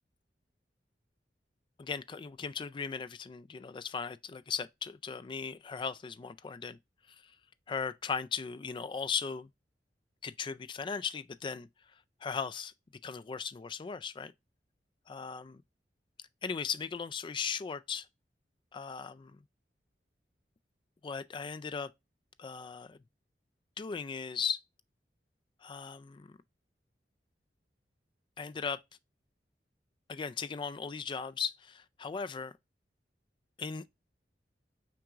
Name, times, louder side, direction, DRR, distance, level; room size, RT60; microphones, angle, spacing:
voice 1, 1.8-6.8 7.2-7.3 7.7-9.5 10.2-11.7 12.2-12.7 13.0-14.3 15.1-15.6 16.4-18.1 18.7-19.4 21.0-21.9 22.4-23.0 23.8-24.6 25.6-26.4 28.4-28.8 30.1-32.5 33.6-33.9, left 6 dB, 30° left, 0.3 m, -37 dB
6.0 x 3.6 x 2.4 m
head